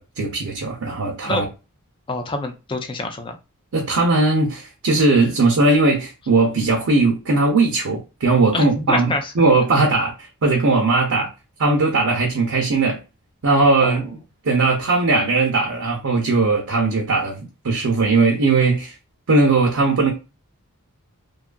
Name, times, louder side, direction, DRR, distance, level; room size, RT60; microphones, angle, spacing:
voice 1, 0.0-1.5 3.7-11.3 11.6-13.0 13.4-14.2 14.4-18.9 19.3-20.1, right 3 dB, 65° right, 0.6 m, -19 dB
voice 2, 2.1-3.3 8.5-9.3 13.8-14.0, left 2 dB, 20° left, 0.4 m, -26 dB
2.6 x 2.4 x 2.2 m
head